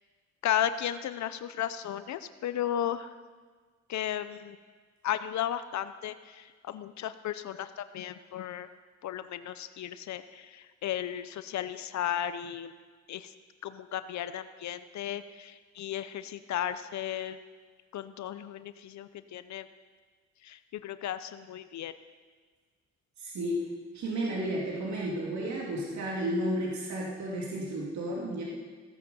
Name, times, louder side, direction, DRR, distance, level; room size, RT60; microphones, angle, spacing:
voice 1, 0.4-3.1 3.9-4.6 5.0-8.7 9.0-12.7 13.1-13.3 13.6-17.4 17.9-19.7 20.4-21.9, left 10 dB, 65° left, 12 dB, 0.7 m, -34 dB
voice 2, 23.2-23.7 23.9-28.4, right 1 dB, 65° right, -3 dB, 2.8 m, -32 dB
16.5 x 9.3 x 7.0 m, 1.5 s
cardioid pair, 90°, 30 cm